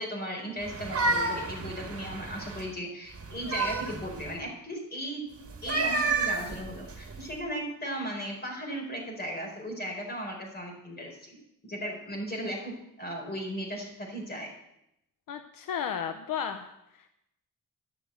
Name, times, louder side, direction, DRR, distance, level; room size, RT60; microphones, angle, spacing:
voice 1, 0.0-5.2 5.6-11.4 11.6-14.5, equal, 30° left, 1 dB, 4.8 m, -36 dB
sound 1, 0.6-2.7 3.2-4.4 5.5-7.3, right 3 dB, 45° right, 1.9 m, -31 dB
voice 2, 15.3-17.1, left 8 dB, 75° left, 8 dB, 0.8 m, -34 dB
12.5 x 7.1 x 7.8 m, 0.82 s
cardioid pair, 100°, 33 cm